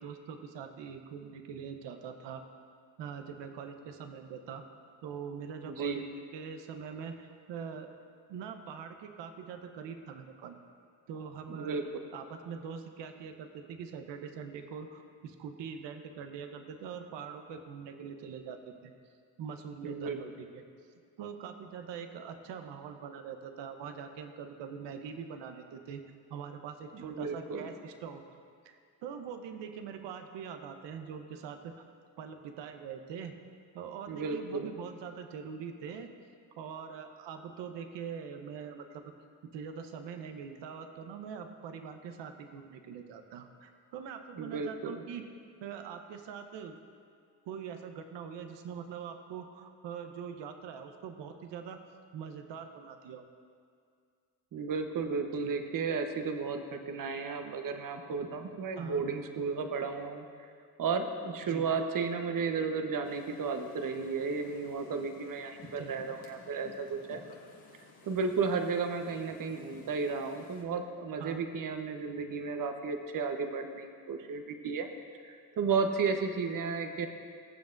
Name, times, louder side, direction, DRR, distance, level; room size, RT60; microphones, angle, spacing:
voice 1, 0.0-2.4 3.0-4.6 5.0-6.0 6.3-7.9 8.3-10.6 11.1-11.8 12.1-18.9 19.4-20.6 21.2-26.0 26.3-28.2 28.6-31.8 32.2-33.3 33.7-36.1 36.6-39.0 39.5-45.3 45.6-46.8 47.4-51.8 52.1-53.2 55.4-55.5 58.8-59.0 61.5-61.7 65.8-65.9 71.2-71.4 77.0-77.1, right 7 dB, 70° right, 6 dB, 1.0 m, -43 dB
voice 2, 5.6-6.0 11.5-11.8 19.8-20.2 26.9-27.7 34.1-34.7 44.4-45.0 54.5-60.2 60.8-67.2 68.1-74.9 75.2-77.1, right 5 dB, 50° right, 6 dB, 1.1 m, -33 dB
sound 1, 63.0-70.6, left 3 dB, 55° left, 1.8 m, -55 dB
20.5 x 7.2 x 2.6 m, 2.2 s
supercardioid pair, 75°, 44 cm